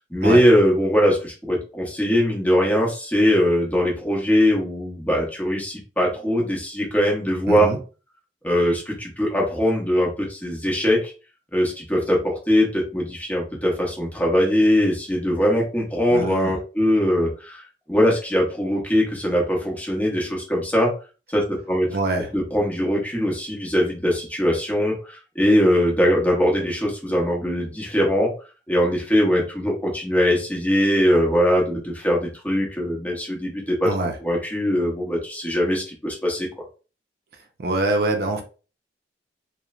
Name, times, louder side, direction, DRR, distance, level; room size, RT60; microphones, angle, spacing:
voice 1, 0.1-7.8 8.4-11.1 11.5-20.9 21.3-22.0 22.3-28.3 28.7-33.9 34.2-36.5, equal, 10° left, 0.8 m, -21 dB
voice 2, 7.5-7.8 16.1-16.5 21.9-22.3 33.8-34.2 37.6-38.4, right 2 dB, 60° right, 0.5 m, -24 dB
3.0 x 2.1 x 2.3 m
head